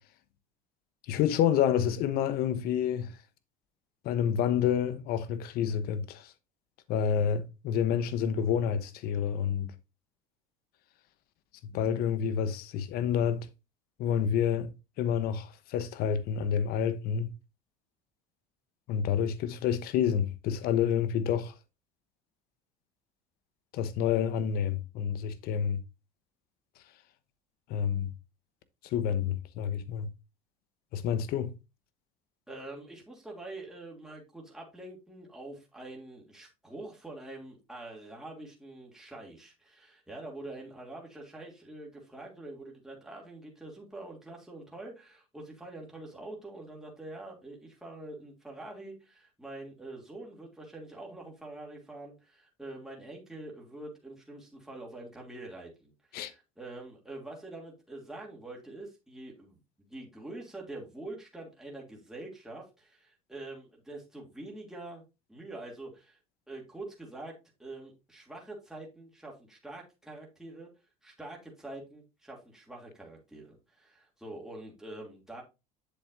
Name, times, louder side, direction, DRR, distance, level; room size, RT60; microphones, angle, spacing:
voice 1, 1.1-3.1 4.0-6.3 6.9-9.7 11.7-13.5 14.0-14.7 15.0-17.3 18.9-21.5 23.7-25.8 27.7-28.1 28.8-30.1 30.9-31.5 56.1-56.3, left 8 dB, 60° left, 1.0 m, -28 dB
voice 2, 32.5-59.6 59.9-65.0 65.3-66.2 66.5-67.3 67.6-70.7 71.0-75.4, right 2 dB, 5° right, 2.8 m, -45 dB
7.7 x 7.1 x 2.7 m
supercardioid pair, 100°, 17 cm